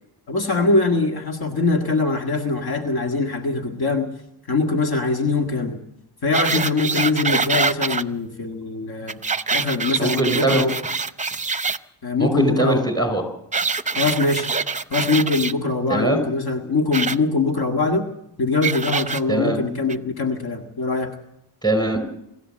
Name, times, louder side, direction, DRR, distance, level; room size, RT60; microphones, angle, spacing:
voice 1, 0.3-4.1 4.5-5.8 6.2-9.2 9.5-10.8 12.0-12.9 13.9-14.5 14.9-18.1 18.4-21.2, left 3 dB, 60° left, 4 dB, 2.0 m, -22 dB
sound 1, 6.3-8.0 9.1-11.8 13.5-15.5 16.9-17.2 18.6-19.2 19.9-20.0, right 4 dB, 15° right, 0.7 m, -24 dB
voice 2, 10.0-10.6 12.2-13.2 15.9-16.2 19.3-19.6 21.6-22.0, right 2 dB, 10° left, 8 dB, 5.4 m, -21 dB
25.0 x 14.5 x 7.6 m, 0.81 s
wide cardioid pair, 100°, 42 cm